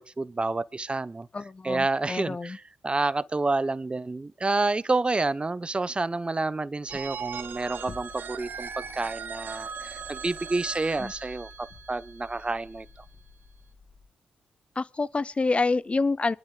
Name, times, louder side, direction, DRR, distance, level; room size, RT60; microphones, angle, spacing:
voice 1, 0.0-1.3 1.6-12.9, right 3 dB, 30° right, 0.9 m, -29 dB
voice 2, 1.3-2.6 11.0-11.1 14.8-16.3, left 3 dB, 35° left, 0.6 m, -27 dB
sound 1, 6.9-14.1, left 4 dB, 55° left, 2.5 m, -51 dB
Telephone, 6.9-12.7, right 6 dB, 65° right, 1.8 m, -39 dB
26.0 x 12.0 x 2.4 m
hypercardioid pair, 40°, 4 cm